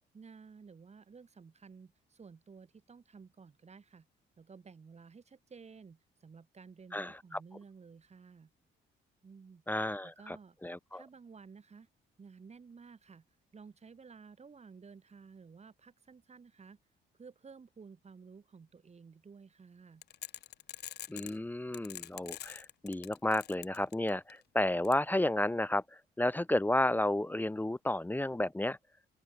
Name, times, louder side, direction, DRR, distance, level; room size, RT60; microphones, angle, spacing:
voice 1, 0.1-4.1 4.4-8.5 9.2-9.6 10.0-10.6 10.9-11.9 12.2-13.2 13.5-16.8 17.2-20.0, right 5 dB, 35° right, 1.9 m, -54 dB
voice 2, 6.9-7.4 9.7-10.4 10.6-11.0 21.1-28.8, left 1 dB, 10° left, 0.5 m, -32 dB
sound 1, 20.0-21.4 21.7-24.3 24.8-24.9, left 11 dB, 55° left, 0.6 m, -44 dB
open air
cardioid pair, 90°, 20 cm